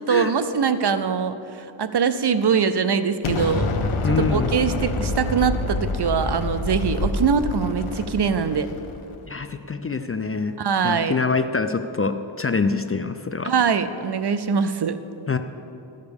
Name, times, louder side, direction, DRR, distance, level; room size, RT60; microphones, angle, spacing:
voice 1, 0.0-3.7 4.2-8.7 10.6-11.2 13.4-15.0, right 6 dB, 55° right, 11 dB, 0.6 m, -23 dB
Explosion, 3.2-9.2, left 3 dB, 85° left, 0.9 m, -27 dB
voice 2, 4.0-4.5 9.3-10.6 10.8-13.5 15.3-15.4, left 4 dB, 30° left, 9 dB, 0.4 m, -25 dB
13.0 x 6.6 x 5.2 m, 2.9 s
wide cardioid pair, 65°, 48 cm